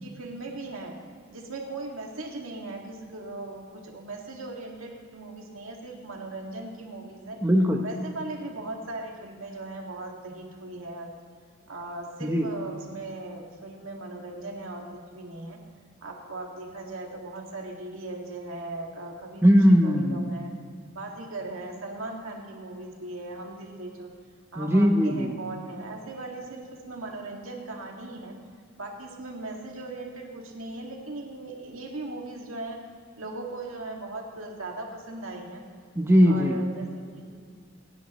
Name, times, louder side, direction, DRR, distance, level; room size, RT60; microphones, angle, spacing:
voice 1, 0.0-1.0 1.3-7.4 7.8-11.1 11.7-15.6 16.0-19.4 19.8-20.5 20.9-24.1 24.5-28.3 28.8-32.8 33.2-35.6 36.3-37.3, right 2 dB, 85° right, 0 dB, 2.1 m, -38 dB
voice 2, 7.4-7.8 12.2-12.5 19.4-20.2 24.6-25.3 36.0-36.6, equal, 10° right, 2 dB, 0.8 m, -19 dB
26.0 x 10.5 x 3.1 m, 2.1 s
head